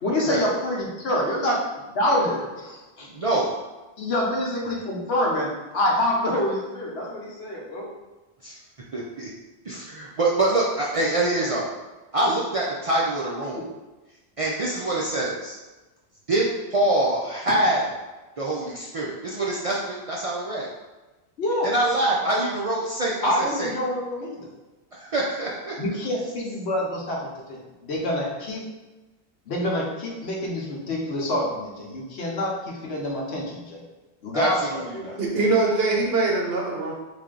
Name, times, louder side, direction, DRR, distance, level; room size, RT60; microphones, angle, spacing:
voice 1, 0.0-1.6 1.9-3.1 4.0-7.9 18.5-18.6 21.4-21.7 23.2-24.5 25.8-28.6 29.5-33.8 34.2-34.6 34.9-35.2, left 1 dB, 80° left, -2 dB, 1.1 m, -26 dB
voice 2, 3.1-3.5 8.4-8.6 8.9-9.3 9.6-11.7 12.1-13.6 14.4-15.6 16.3-17.8 18.4-20.7 21.6-23.7 24.9-25.7 34.3-35.2, right 2 dB, 45° right, -5 dB, 0.4 m, -25 dB
voice 3, 35.2-36.9, right 3 dB, 65° right, -1 dB, 1.0 m, -22 dB
3.3 x 2.7 x 3.7 m, 1.1 s
omnidirectional pair, 1.1 m